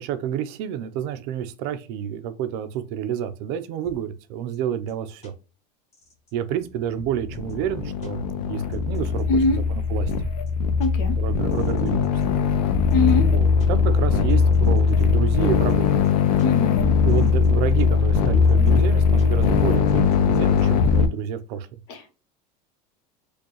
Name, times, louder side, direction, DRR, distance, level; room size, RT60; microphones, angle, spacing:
voice 1, 0.0-5.3 6.3-9.6 9.9-10.1 11.2-12.4 13.2-15.9 17.0-21.7, right 9 dB, 55° right, 0.6 m, -29 dB
sound 1, 3.8-3.9 4.5-4.6 4.9-5.0 5.2-5.3 5.9-6.3 6.6-6.7 7.0-7.5 8.0-8.1 8.7-9.5 10.1-10.2 10.5-10.6 10.8-10.9 11.5-12.2 12.5-13.1 13.6-13.7 14.3-15.1 15.7-15.8 16.0-16.1 16.4-16.5 17.1-17.5 17.8-17.9 18.1-18.7 19.2-19.3 19.9-20.7, left 5 dB, 30° left, 1.6 m, -44 dB
sound 2, 7.2-21.1, left 5 dB, 80° left, 0.6 m, -20 dB
voice 2, 9.3-9.6 10.8-11.1 12.9-13.3 16.4-16.9 21.9-22.0, left 3 dB, 55° left, 1.1 m, -22 dB
4.4 x 2.3 x 3.0 m
supercardioid pair, 115°, 21 cm